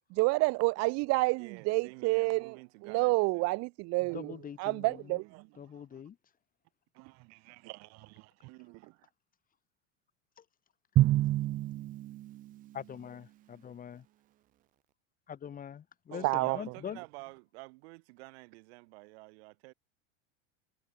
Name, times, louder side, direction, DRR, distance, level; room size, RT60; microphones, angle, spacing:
voice 1, 0.1-2.6 2.8-5.4 7.0-8.6 16.2-16.6, right 25 dB, 50° right, 1.2 m, -30 dB
voice 2, 1.4-3.5 16.1-19.7, right 27 dB, 70° right, 6.0 m, -50 dB
voice 3, 4.0-5.2 5.6-6.2 10.4-10.5 12.7-14.1 15.3-17.0, left 8 dB, 25° left, 2.6 m, -44 dB
Drum, 11.0-12.7, right 15 dB, 25° right, 0.4 m, -28 dB
supercardioid pair, 135°, 33 cm